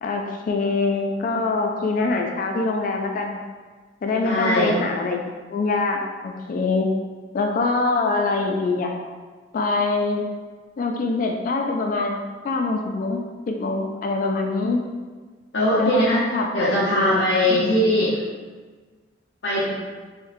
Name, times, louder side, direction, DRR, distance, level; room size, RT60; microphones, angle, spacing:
voice 1, 0.0-3.4 4.0-6.9 7.3-9.0 9.5-10.2 10.8-14.8 15.8-17.7, left 3 dB, 50° left, 3 dB, 0.3 m, -24 dB
voice 2, 4.2-4.7 15.5-16.2 16.5-18.2 19.4-19.7, equal, 70° left, -8 dB, 0.8 m, -20 dB
3.8 x 3.0 x 2.6 m, 1.4 s
head